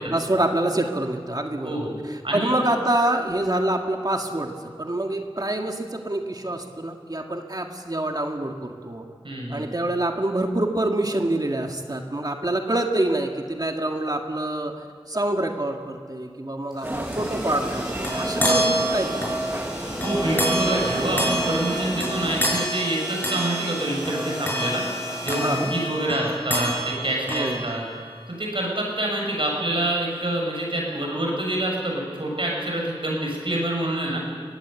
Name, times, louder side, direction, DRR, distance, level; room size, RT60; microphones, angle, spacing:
voice 1, 0.1-9.1 9.5-14.7 15.1-19.6 25.4-25.7 27.3-27.7, right 1 dB, 40° right, 3 dB, 2.0 m, -26 dB
voice 2, 1.6-1.9 2.2-2.6 9.2-9.7 20.0-24.8 25.2-27.8 28.3-34.2, right 1 dB, 65° right, -1 dB, 7.3 m, -26 dB
sound 1, 16.7-26.7, equal, 5° right, 7.9 m, -37 dB
sound 2, 16.8-22.7, right 1 dB, 20° right, 1.1 m, -31 dB
sound 3, 17.5-28.2, right 1 dB, 20° left, 6.4 m, -28 dB
22.5 x 17.5 x 8.3 m, 2.1 s
wide cardioid pair, 55°, 10 cm